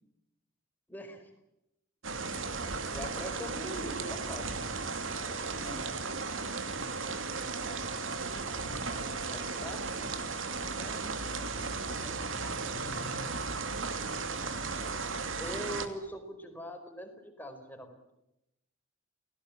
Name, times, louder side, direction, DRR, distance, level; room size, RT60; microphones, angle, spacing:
voice 1, 0.9-1.3 2.9-4.6 9.3-9.9 15.4-18.0, equal, 10° left, 5 dB, 4.8 m, -42 dB
sound 1, 2.0-15.9, right 4 dB, 70° right, 2.7 m, -35 dB
voice 2, 5.6-6.0 10.6-13.1, equal, 15° right, 2 dB, 3.3 m, -50 dB
29.0 x 18.5 x 9.1 m, 0.86 s
head